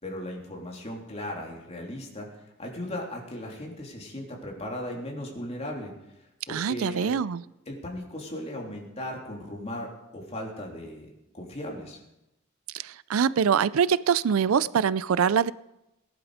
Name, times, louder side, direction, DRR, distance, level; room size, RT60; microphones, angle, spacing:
voice 1, 0.0-2.3 2.6-5.9 6.5-7.1 7.7-12.0, left 1 dB, 30° left, -1 dB, 3.3 m, -37 dB
voice 2, 6.5-7.4 12.7-15.5, right 7 dB, 85° right, 19 dB, 0.4 m, -24 dB
18.5 x 11.5 x 5.0 m, 0.90 s
head